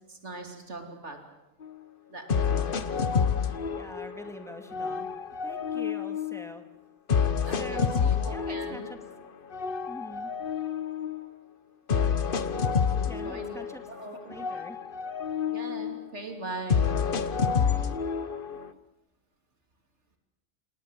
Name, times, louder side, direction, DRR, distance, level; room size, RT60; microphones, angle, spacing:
voice 1, 0.1-1.2 2.1-2.7 4.9-5.0 7.5-8.9 13.2-13.6 13.9-14.5 15.5-16.9 18.5-18.6, right 2 dB, 85° right, 4 dB, 3.3 m, -40 dB
sound 1, 1.6-1.7 2.3-4.3 4.7-6.5 7.1-9.1 9.5-11.3 11.9-14.1 14.3-16.1 16.7-18.7, left 6 dB, 50° left, 1.2 m, -28 dB
voice 2, 3.4-5.1 5.4-6.6 7.2-9.0 9.9-10.3 13.0-13.8 14.2-14.8 17.5-18.0, right 1 dB, ahead, 6 dB, 2.0 m, -44 dB
29.0 x 18.5 x 7.5 m, 0.99 s
omnidirectional pair, 1.2 m